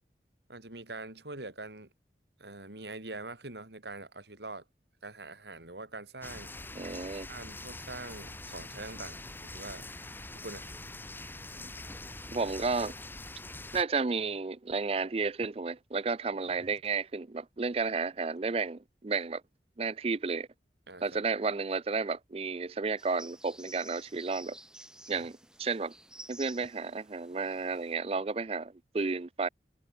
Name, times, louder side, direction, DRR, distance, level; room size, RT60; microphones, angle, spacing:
voice 1, 0.5-1.9 2.4-4.6 5.0-6.5 7.3-9.9 10.3-10.6 16.6-16.7 20.9-21.2 25.1-25.3, right 2 dB, 75° right, 3.9 m, -44 dB
sound 1, 6.2-13.8, left 2 dB, 10° left, 3.5 m, -44 dB
voice 2, 6.7-7.3 12.3-13.0 13.7-19.4 19.8-20.5 21.0-24.6 25.1-25.9 26.3-29.5, right 4 dB, 35° right, 0.5 m, -32 dB
sound 2, 23.0-28.0, right 1 dB, 5° right, 4.1 m, -51 dB
head